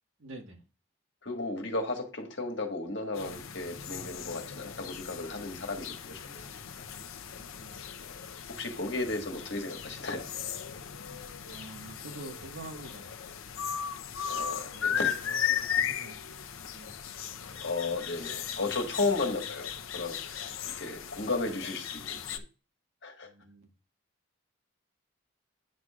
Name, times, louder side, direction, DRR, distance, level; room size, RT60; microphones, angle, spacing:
voice 1, 0.2-0.6 7.3-7.8 9.1-9.3 11.5-13.1 14.7-16.2 16.6-17.0 18.3-18.7 23.2-23.7, right 2 dB, 75° right, 3 dB, 1.6 m, -47 dB
voice 2, 1.2-6.6 8.5-10.2 14.3-15.2 17.6-19.7 19.9-20.5 20.8-22.4 23.0-23.3, left 3 dB, 60° left, 2 dB, 1.6 m, -34 dB
sound 1, 3.2-22.4, left 8 dB, 85° left, 0.7 m, -37 dB
9.3 x 6.1 x 2.4 m, 0.32 s
head